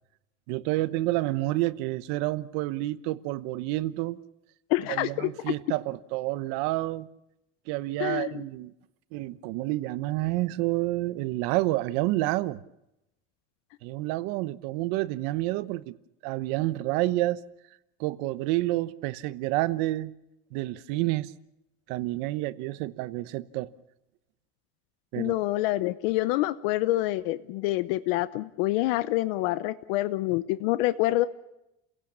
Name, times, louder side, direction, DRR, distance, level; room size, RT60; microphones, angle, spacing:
voice 1, 0.5-4.2 4.9-7.1 7.7-8.7 9.1-12.6 13.8-15.9 16.2-17.4 18.0-20.1 20.5-21.3 21.9-23.7 25.1-25.3, right 18 dB, 70° right, 1.0 m, -29 dB
voice 2, 4.7-5.3 8.0-8.4 25.2-31.3, left 17 dB, 85° left, 0.9 m, -27 dB
30.0 x 16.5 x 7.3 m
cardioid pair, 180°, 29 cm